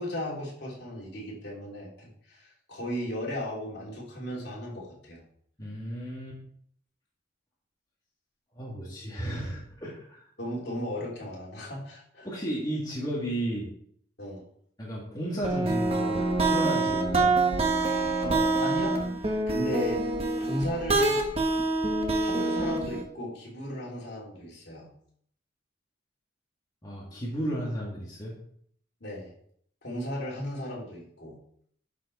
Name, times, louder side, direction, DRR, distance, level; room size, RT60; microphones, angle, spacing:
voice 1, 0.0-5.2 10.4-12.3 14.2-14.4 18.2-18.9 19.2-20.0 20.4-21.2 22.2-24.9 29.0-29.3 29.8-31.4, equal, 60° left, -4 dB, 3.0 m, -36 dB
voice 2, 5.6-6.4 8.5-10.2 12.2-13.7 14.8-17.4 26.8-28.3, right 1 dB, 20° left, -5 dB, 1.8 m, -33 dB
sound 1, 15.4-23.0, right 2 dB, 30° right, 1.1 m, -26 dB
11.0 x 4.7 x 4.1 m, 0.65 s
head